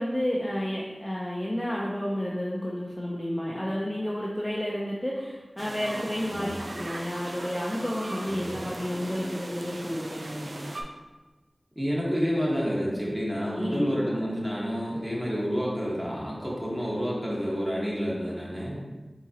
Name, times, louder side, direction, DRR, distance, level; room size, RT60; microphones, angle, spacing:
voice 1, 0.0-10.6 13.5-13.9, equal, 15° left, -5 dB, 0.6 m, -31 dB
sound 1, 5.6-10.8, right 1 dB, 75° right, 0.4 m, -38 dB
voice 2, 8.3-8.6 11.7-18.8, equal, 10° right, -5 dB, 1.4 m, -29 dB
4.4 x 3.7 x 2.8 m, 1.2 s
wide cardioid pair, 45°, 0 cm